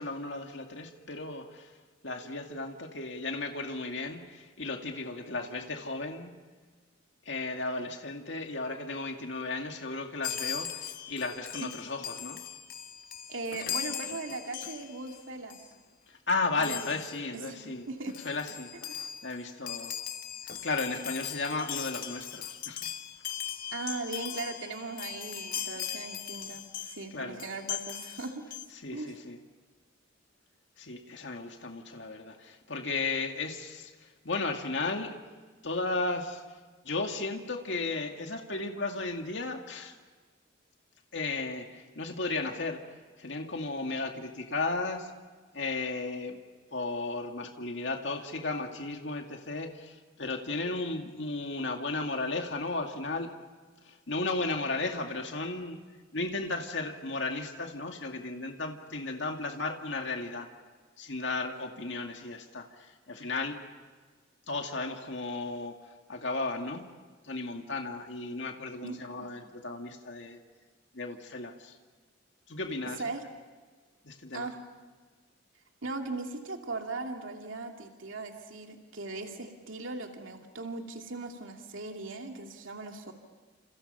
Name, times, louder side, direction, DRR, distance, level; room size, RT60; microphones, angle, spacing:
voice 1, 0.0-1.8 2.0-6.4 7.2-12.4 16.1-17.9 18.2-19.9 20.6-22.9 27.1-27.4 28.8-29.4 30.8-35.1 35.6-36.6 36.8-40.0 41.1-42.8 43.2-45.1 45.5-46.4 46.7-53.3 53.8-55.8 56.1-60.5 61.0-63.5 64.5-66.9 67.2-70.4 70.9-71.8 72.5-73.1 74.0-74.5, left 3 dB, 65° left, 3 dB, 2.3 m, -35 dB
Chime, 10.2-15.2 15.5-15.7 16.6-17.2 17.8-17.9 18.1-27.1 27.4-28.6, left 10 dB, 45° left, 1.3 m, -39 dB
voice 2, 13.3-15.6 16.6-16.8 17.3-18.2 23.7-28.5 28.9-29.1 68.8-69.0 73.0-73.2 74.3-74.6 75.8-83.1, right 3 dB, 80° right, 3 dB, 2.4 m, -39 dB
29.5 x 28.0 x 5.6 m, 1.4 s
head